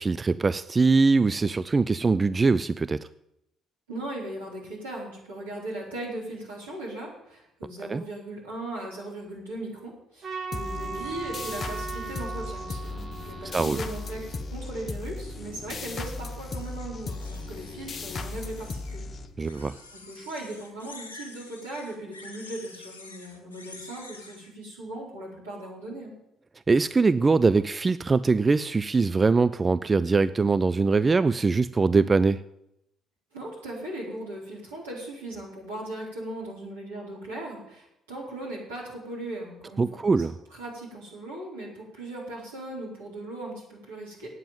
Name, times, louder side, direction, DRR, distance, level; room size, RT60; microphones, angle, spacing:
voice 1, 0.0-3.1 7.9-8.0 13.5-13.8 19.4-19.7 26.7-32.4 39.8-40.3, right 4 dB, 25° right, 14 dB, 0.4 m, -22 dB
voice 2, 3.9-19.1 19.9-26.1 33.3-40.1 40.5-44.3, right 1 dB, 80° right, -6 dB, 4.5 m, -38 dB
Trumpet, 10.2-14.6, right 4 dB, 50° right, 2.2 m, -38 dB
sound 1, 10.5-19.7, left 3 dB, 35° left, 1.0 m, -36 dB
sound 2, 16.5-19.0 19.4-24.5, left 3 dB, 80° left, 1.5 m, -48 dB
9.1 x 8.8 x 9.2 m, 0.81 s
figure-of-eight pair, 45°, 0 cm